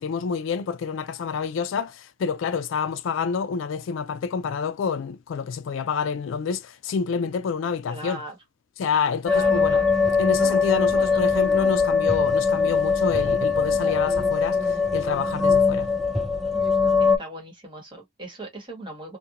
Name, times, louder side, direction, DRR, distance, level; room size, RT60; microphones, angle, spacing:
voice 1, 0.0-8.2 8.8-9.8 10.2-15.9, left 6 dB, 65° left, 0.3 m, -28 dB
voice 2, 7.9-8.4 9.3-9.9 11.0-11.2 17.0-19.2, right 1 dB, 25° right, 1.1 m, -38 dB
sound 1, 9.3-17.2, left 5 dB, ahead, 0.4 m, -21 dB
2.5 x 2.1 x 2.8 m
head